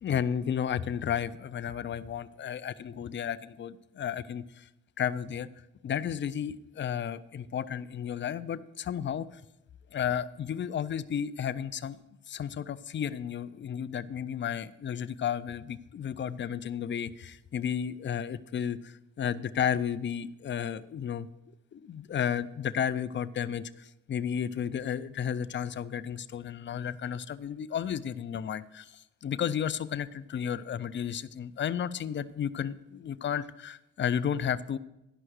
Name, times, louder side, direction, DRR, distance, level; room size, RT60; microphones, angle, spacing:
voice 1, 0.0-4.7 5.0-5.5 5.8-9.4 9.9-12.0 12.3-21.3 21.7-34.8, left 8 dB, 35° left, 15 dB, 0.4 m, -33 dB
11.0 x 5.5 x 6.4 m, 0.89 s
cardioid pair, 95°, 31 cm